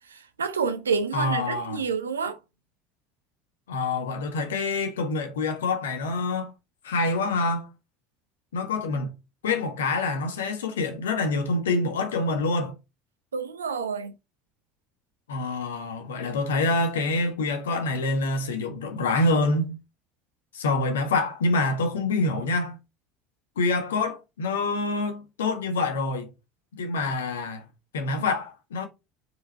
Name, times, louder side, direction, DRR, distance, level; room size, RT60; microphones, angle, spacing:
voice 1, 0.1-2.4 13.3-14.1, right 5 dB, 75° right, 0.8 m, -28 dB
voice 2, 1.1-1.8 3.7-6.5 6.8-7.7 8.5-9.1 9.4-12.7 15.3-19.7 20.5-22.8 23.6-26.3 26.7-27.6 27.9-28.9, left 3 dB, 70° left, 1.4 m, -26 dB
6.6 x 5.0 x 4.1 m
figure-of-eight pair, 65°, 0 cm